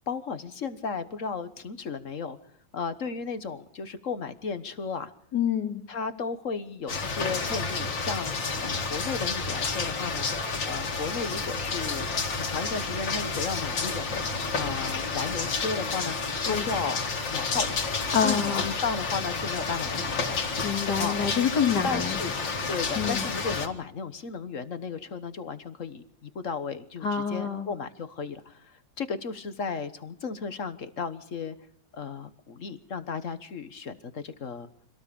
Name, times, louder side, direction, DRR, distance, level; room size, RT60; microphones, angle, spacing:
voice 1, 0.0-2.4 2.7-5.1 5.9-14.2 14.5-16.1 16.4-17.0 17.3-17.8 18.2-20.4 21.0-21.1 21.8-22.4 22.7-31.6 31.9-34.7, left 5 dB, 45° left, 11 dB, 1.4 m, -34 dB
voice 2, 5.3-5.8 16.3-16.7 18.1-18.7 20.6-22.2 22.9-23.3 27.0-27.7, left 7 dB, 65° left, 5 dB, 2.9 m, -27 dB
sound 1, 6.9-23.7, left 4 dB, 85° left, 3.0 m, -30 dB
25.5 x 18.0 x 6.9 m, 0.65 s
omnidirectional pair, 2.0 m